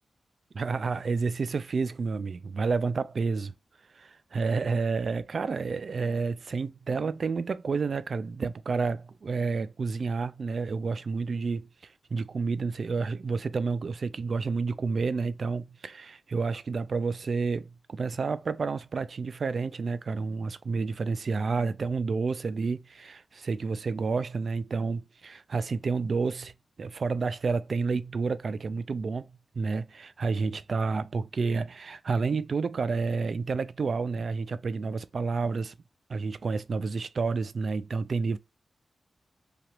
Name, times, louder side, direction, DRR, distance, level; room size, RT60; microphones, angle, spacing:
voice 1, 0.5-3.5 4.0-26.5 26.8-35.7 36.1-38.4, right 4 dB, 65° right, 0.3 m, -30 dB
3.2 x 2.4 x 2.8 m
cardioid pair, 70°, 0 cm